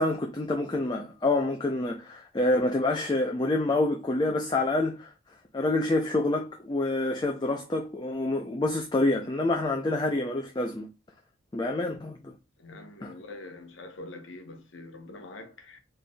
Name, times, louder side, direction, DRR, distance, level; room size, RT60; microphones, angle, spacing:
voice 1, 0.0-5.1 5.5-10.9 11.5-12.3 13.0-13.1, left 2 dB, 20° left, 0.4 m, -27 dB
voice 2, 12.6-15.8, left 2 dB, 70° left, 0.9 m, -44 dB
4.2 x 3.2 x 2.2 m
head